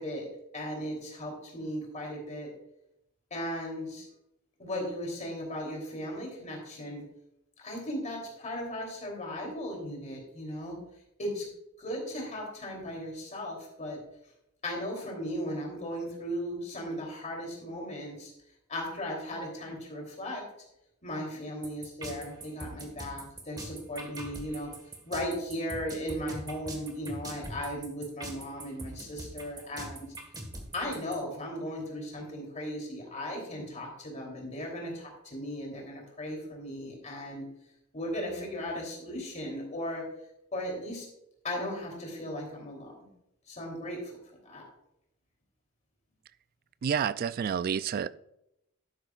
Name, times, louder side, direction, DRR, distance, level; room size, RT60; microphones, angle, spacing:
voice 1, 0.0-2.5 3.3-4.1 4.6-7.0 7.6-10.8 11.2-11.5 11.8-14.0 14.6-18.3 18.7-20.4 21.0-24.7 25.0-30.1 30.7-37.4 37.9-40.0 40.5-41.1 41.4-43.1 43.5-44.2 44.4-44.7, equal, 35° left, 0 dB, 3.2 m, -37 dB
sound 1, 21.6-31.1, right 1 dB, 20° right, 1.5 m, -41 dB
voice 2, 46.8-48.1, right 7 dB, 45° right, 17 dB, 0.3 m, -29 dB
12.0 x 9.6 x 2.4 m, 0.82 s
head